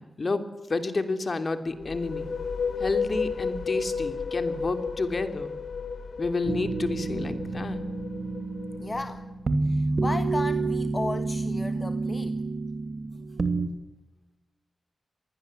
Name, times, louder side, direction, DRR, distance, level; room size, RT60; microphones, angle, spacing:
voice 1, 0.0-2.3 2.8-5.6 6.2-7.8, left 3 dB, 50° left, 9 dB, 3.0 m, -30 dB
sound 1, 1.7-9.3, left 5 dB, 75° left, 1.5 m, -33 dB
sound 2, 6.5-13.7, right 3 dB, 55° right, 2.7 m, -29 dB
voice 2, 8.8-9.2 9.6-12.4, left 2 dB, 30° left, 9 dB, 1.4 m, -34 dB
27.0 x 20.5 x 7.8 m, 1.0 s
wide cardioid pair, 85°, 0 cm